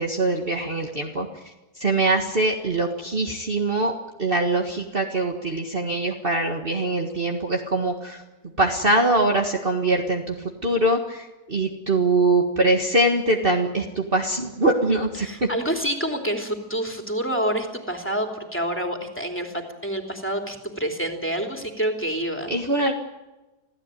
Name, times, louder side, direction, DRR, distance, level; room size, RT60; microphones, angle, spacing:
voice 1, 0.0-3.9 4.2-8.2 8.6-15.5 22.5-22.9, right 2 dB, 35° right, 1 dB, 1.8 m, -23 dB
voice 2, 15.2-22.5, right 1 dB, 5° left, 3 dB, 3.2 m, -27 dB
27.0 x 16.5 x 9.2 m, 1.1 s
omnidirectional pair, 1.7 m